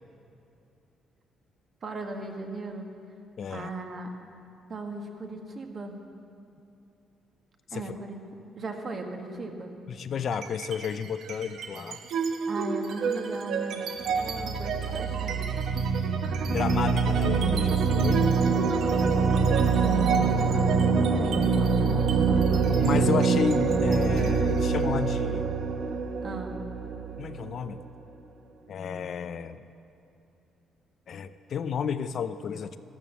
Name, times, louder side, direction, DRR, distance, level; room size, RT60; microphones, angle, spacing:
voice 1, 1.8-2.9 3.5-4.1 4.7-6.0 7.7-8.2 8.5-9.7 12.5-13.9 14.2-15.5 19.7-22.6 26.2-26.6, right 2 dB, 40° right, 3 dB, 1.5 m, -37 dB
voice 2, 3.4-3.7 7.7-7.8 9.9-12.0 14.9-15.2 16.5-18.3 22.8-25.5 27.2-27.8 28.7-29.6 31.1-32.8, left 7 dB, 50° left, 11 dB, 0.5 m, -32 dB
sound 1, 10.3-10.9 11.2-27.8, right 5 dB, 65° right, 1.0 m, -25 dB
13.0 x 12.5 x 7.5 m, 2.7 s
cardioid pair, 140°, 0 cm